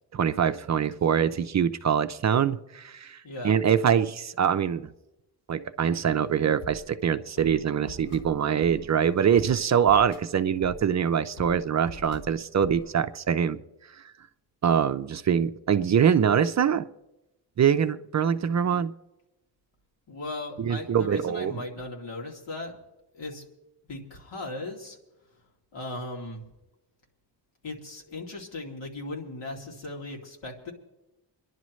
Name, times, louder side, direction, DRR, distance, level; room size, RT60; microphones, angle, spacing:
voice 1, 0.1-4.9 5.5-13.6 14.6-16.9 17.6-18.9 20.6-21.6, right 8 dB, 40° right, 10 dB, 0.5 m, -24 dB
voice 2, 3.2-3.5 20.1-22.7 23.1-23.4 23.9-25.0 25.7-26.4 27.6-30.7, left 2 dB, 85° left, 0 dB, 2.8 m, -37 dB
sound 1, 6.2-12.9, equal, 50° left, 2.1 m, -46 dB
27.0 x 11.0 x 3.1 m, 0.97 s
wide cardioid pair, 160°, 43 cm